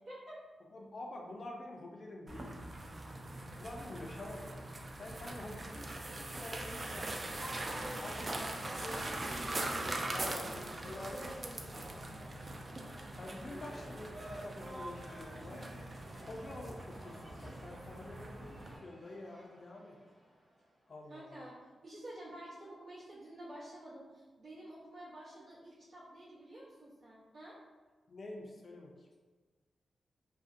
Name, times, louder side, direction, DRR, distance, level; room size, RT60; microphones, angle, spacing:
voice 1, 0.7-2.6 3.6-4.7 4.9-5.9 6.2-7.4 8.0-8.4 8.6-9.0 10.0-11.3 11.7-11.8 13.2-15.7 16.2-20.0 20.9-21.3 28.1-29.1, left 1 dB, 50° left, 0 dB, 0.4 m, -47 dB
sound 1, 2.3-18.8, right 2 dB, 40° right, 0.3 m, -42 dB
voice 2, 5.3-5.7 7.7-8.0 8.4-12.3 21.1-27.6, right 1 dB, 75° right, -11 dB, 0.7 m, -51 dB
Cheering / Applause, 7.3-20.7, right 1 dB, 20° right, 0.8 m, -52 dB
2.5 x 2.1 x 2.5 m, 1.4 s
cardioid pair, 70°, 0 cm